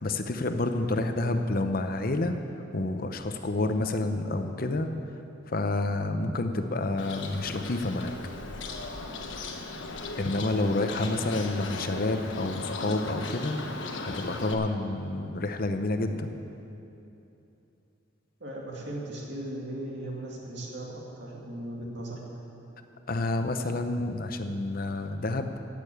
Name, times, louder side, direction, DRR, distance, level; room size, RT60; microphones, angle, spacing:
voice 1, 0.0-2.4 2.7-4.9 5.5-8.1 10.2-13.6 14.0-16.3 23.1-25.7, left 2 dB, 45° left, 7 dB, 0.8 m, -29 dB
Bird, 7.0-14.5, left 3 dB, 65° left, 1.1 m, -37 dB
voice 2, 18.4-22.2, right 1 dB, 60° right, -3 dB, 2.6 m, -37 dB
15.5 x 6.9 x 8.6 m, 2.9 s
head